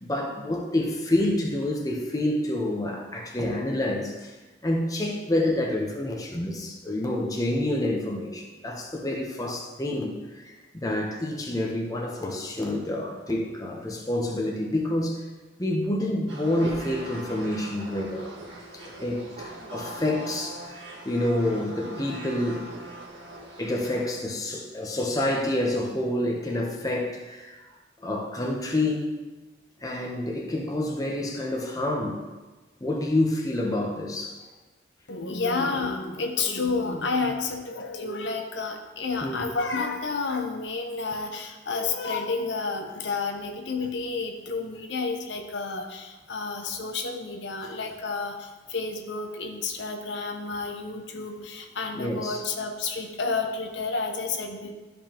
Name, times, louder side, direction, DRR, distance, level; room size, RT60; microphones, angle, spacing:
voice 1, 0.0-4.4 4.6-15.2 15.6-18.4 18.7-22.8 23.6-27.6 28.0-29.2 29.8-32.2 32.8-34.4 39.2-39.5 51.9-52.4, left 1 dB, 20° left, 0 dB, 0.9 m, -28 dB
sound 1, 16.3-24.2, right 1 dB, 70° right, 1.8 m, -40 dB
voice 2, 35.1-54.7, left 4 dB, 70° left, 3 dB, 0.8 m, -30 dB
12.5 x 5.2 x 2.9 m, 1.2 s
head